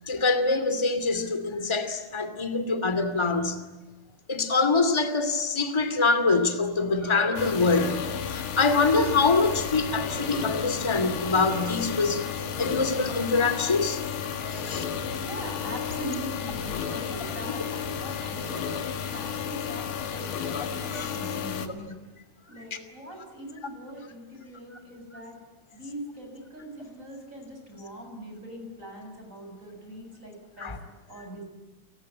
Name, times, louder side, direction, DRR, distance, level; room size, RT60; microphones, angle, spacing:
voice 1, 0.1-3.6 4.3-12.3 12.6-14.0 14.4-14.8 20.5-21.1 30.6-30.8, left 3 dB, 10° left, 1.9 m, -25 dB
sound 1, 7.4-21.7, left 7 dB, 65° left, 3.2 m, -32 dB
voice 2, 14.8-18.8 19.1-22.0 22.5-25.4 25.7-30.7 31.1-31.4, right 1 dB, 20° right, 8.0 m, -41 dB
30.0 x 19.5 x 9.9 m
omnidirectional pair, 3.9 m